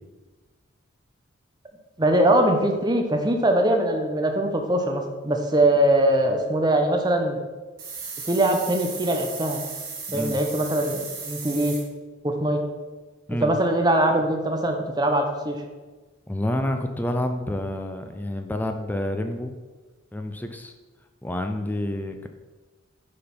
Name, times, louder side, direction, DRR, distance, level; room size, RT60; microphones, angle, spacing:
voice 1, 2.0-7.4 8.3-9.6 10.1-11.7 12.2-12.6 13.4-15.6, right 1 dB, 20° right, 3 dB, 0.7 m, -22 dB
sound 1, 7.8-11.8, right 4 dB, 45° right, 2.1 m, -36 dB
voice 2, 16.3-19.6 20.1-20.7 21.2-22.3, left 1 dB, 10° left, 6 dB, 0.4 m, -28 dB
6.6 x 3.8 x 5.9 m, 1.3 s
head